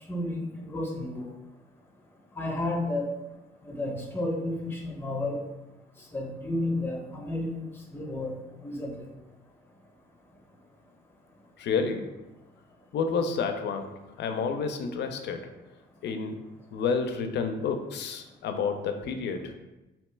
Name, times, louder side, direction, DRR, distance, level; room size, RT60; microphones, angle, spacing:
voice 1, 0.1-1.3 2.4-3.1 3.7-5.4 6.1-7.5 7.9-8.4 8.6-8.9, left 1 dB, 10° left, 0 dB, 0.6 m, -31 dB
voice 2, 11.6-12.1 12.9-15.5 16.0-16.4 16.7-19.5, left 5 dB, 60° left, 7 dB, 0.4 m, -30 dB
2.8 x 2.1 x 3.2 m, 1.0 s
cardioid pair, 90°, 20 cm